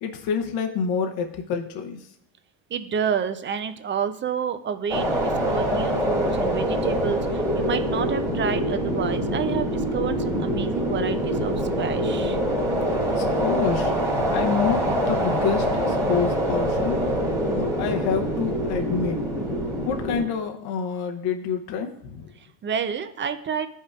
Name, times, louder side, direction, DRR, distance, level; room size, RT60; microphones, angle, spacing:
voice 1, 0.0-2.0 13.2-13.9 14.3-19.2 19.8-22.3, left 6 dB, 50° left, 4 dB, 0.8 m, -28 dB
voice 2, 2.7-12.4 22.4-23.7, right 7 dB, 25° right, 10 dB, 0.4 m, -29 dB
sound 1, 4.9-20.2, equal, 5° right, 1.5 m, -25 dB
14.0 x 5.5 x 2.4 m, 0.69 s
supercardioid pair, 110°, 49 cm